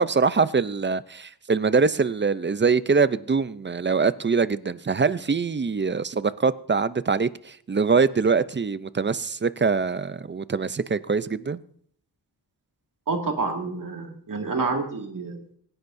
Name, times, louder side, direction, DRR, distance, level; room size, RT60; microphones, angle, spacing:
voice 1, 0.0-11.6, right 5 dB, 30° right, 0.5 m, -23 dB
voice 2, 13.1-15.6, right 3 dB, 50° right, 2.2 m, -28 dB
25.5 x 10.5 x 2.6 m
wide cardioid pair, 85°, 40 cm